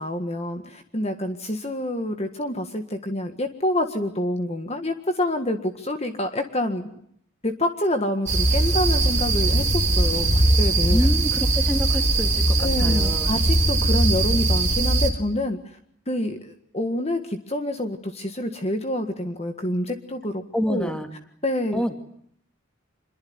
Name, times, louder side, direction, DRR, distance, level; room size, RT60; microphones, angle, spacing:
voice 1, 0.0-6.9 7.4-10.3 10.6-11.1 12.6-15.6 16.1-20.9 21.4-21.8, left 1 dB, 30° left, 6 dB, 1.7 m, -27 dB
sound 1, 8.3-15.1, right 2 dB, 30° right, 3.7 m, -20 dB
voice 2, 10.9-13.3 20.5-21.1 21.7-21.9, equal, 5° left, 6 dB, 2.4 m, -28 dB
26.5 x 22.5 x 9.6 m, 0.70 s
head